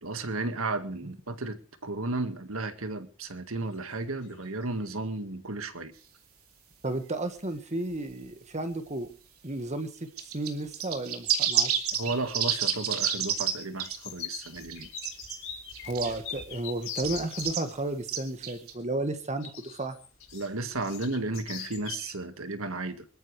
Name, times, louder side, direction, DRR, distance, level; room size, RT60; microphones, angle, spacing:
voice 1, 0.0-5.9 11.9-14.9 20.3-23.1, right 2 dB, 70° right, 9 dB, 1.8 m, -34 dB
sound 1, 3.7-3.9 4.2-4.8 6.8-6.9 7.5-7.6 7.9-8.3 8.6-9.1 9.7-9.8 10.8-11.3 11.6-17.6 19.4-22.1, left 8 dB, 70° left, 5.3 m, -43 dB
voice 2, 6.8-9.1 9.4-9.9 10.2-11.9 15.8-20.0, right 2 dB, 30° right, 8 dB, 1.6 m, -33 dB
sound 2, 10.2-13.5 13.8-14.0 14.5-15.4 15.7-16.2 17.0-17.6 18.1-18.7, right 8 dB, 90° right, 2.9 m, -29 dB
25.0 x 13.5 x 3.3 m, 0.37 s
head